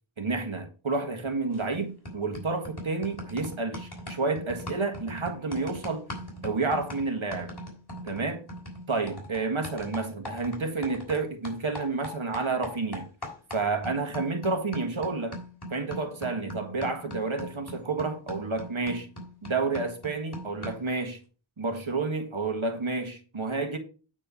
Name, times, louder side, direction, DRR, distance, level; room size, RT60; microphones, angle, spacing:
voice 1, 0.2-6.1 6.4-7.5 8.0-8.4 8.9-13.1 13.5-15.4 15.7-19.1 19.4-21.2 21.6-23.8, right 3 dB, 70° right, 1.7 m, -30 dB
sound 1, 1.5-1.8 2.0-11.2 11.4-20.9, equal, 50° left, 3.2 m, -41 dB
8.9 x 4.4 x 5.6 m
wide cardioid pair, 45°, 49 cm